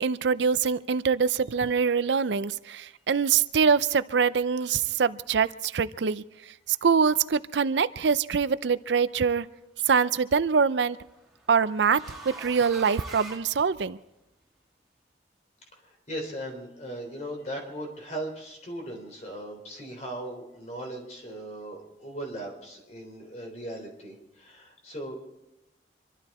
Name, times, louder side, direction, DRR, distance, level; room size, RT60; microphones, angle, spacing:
voice 1, 0.0-6.2 6.7-9.5 9.9-11.0 11.5-14.0, right 6 dB, 80° right, 15 dB, 0.5 m, -24 dB
sound 1, 8.5-8.8 10.2-14.2, right 2 dB, ahead, 2.2 m, -45 dB
voice 2, 16.1-25.2, right 1 dB, 40° left, 2 dB, 3.6 m, -38 dB
25.5 x 12.5 x 4.3 m, 0.92 s
head